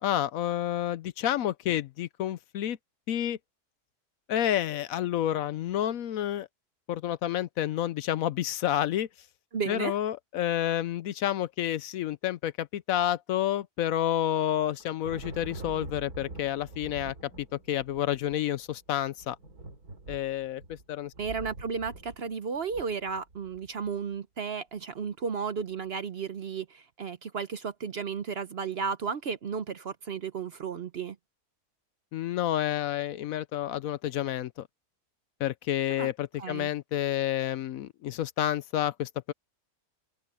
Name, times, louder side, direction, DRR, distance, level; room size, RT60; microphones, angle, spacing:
voice 1, 0.0-2.8 3.1-3.4 4.3-6.5 6.9-9.1 9.7-17.1 17.7-19.4 20.1-21.1 32.1-34.7 35.4-39.3, left 11 dB, 70° left, 1.0 m, -29 dB
voice 2, 9.5-9.9 21.2-31.2 36.0-36.1 36.4-36.7, right 6 dB, 50° right, 0.9 m, -34 dB
Thunder, 14.5-23.9, right 2 dB, 75° right, 3.9 m, -45 dB
open air
omnidirectional pair, 1.6 m